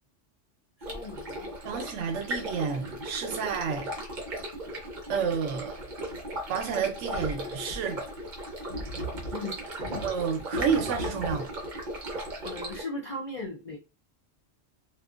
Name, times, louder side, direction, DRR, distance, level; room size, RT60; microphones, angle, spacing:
voice 1, 0.8-1.5 9.3-10.1 12.4-13.8, left 2 dB, 50° left, 0.4 m, -38 dB
Stream, 0.8-12.8, right 1 dB, 45° right, 0.8 m, -36 dB
voice 2, 1.6-3.9 5.1-5.9 6.5-8.0 10.0-11.5, right 6 dB, 75° right, 0.9 m, -30 dB
2.5 x 2.4 x 2.4 m
omnidirectional pair, 1.3 m